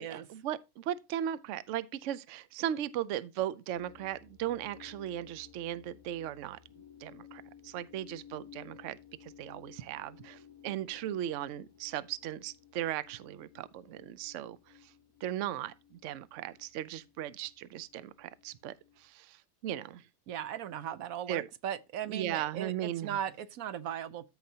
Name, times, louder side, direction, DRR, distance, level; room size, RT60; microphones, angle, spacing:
voice 1, 0.0-6.6 7.0-14.6 15.2-18.7 19.0-19.4 19.6-20.0 21.3-21.5 22.1-23.2, right 11 dB, 70° right, 0.9 m, -37 dB
sound 1, 3.7-19.1, left 9 dB, 25° left, 2.2 m, -57 dB
voice 2, 20.3-24.3, right 10 dB, 85° right, 1.2 m, -38 dB
14.0 x 4.9 x 2.7 m
omnidirectional pair, 1.4 m